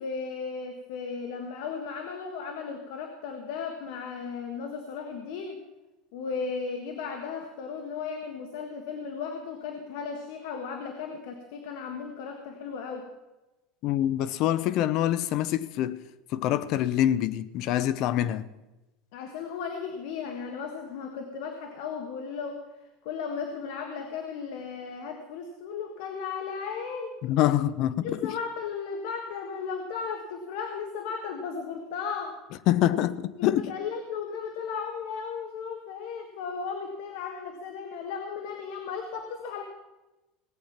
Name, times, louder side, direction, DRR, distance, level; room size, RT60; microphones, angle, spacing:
voice 1, 0.0-5.6 6.1-13.1 19.1-22.6 23.0-27.2 28.0-32.4 33.4-39.6, left 5 dB, 70° left, 1.5 m, -35 dB
voice 2, 13.8-16.0 16.3-18.5 27.2-28.3 32.7-33.8, left 12 dB, 50° left, 0.6 m, -25 dB
18.0 x 9.0 x 5.8 m
cardioid pair, 155°, 0 cm